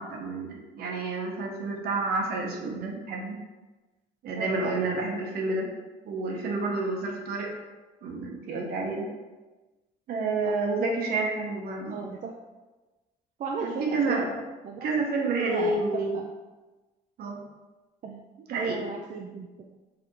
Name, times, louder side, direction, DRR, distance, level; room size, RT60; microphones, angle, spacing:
voice 1, 0.0-3.3 4.2-5.7 6.0-7.5 8.0-9.1 10.1-12.0 13.6-14.3 14.8-16.2 17.2-17.4 18.5-18.8, right 3 dB, 65° right, 1 dB, 1.0 m, -29 dB
voice 2, 4.4-5.0 10.4-10.5 11.9-12.3 13.4-14.3 14.6-15.0 15.4-16.2 18.0-19.7, right 4 dB, 45° right, 1 dB, 0.4 m, -35 dB
4.9 x 3.4 x 3.1 m, 1.2 s
cardioid pair, 110°, 17 cm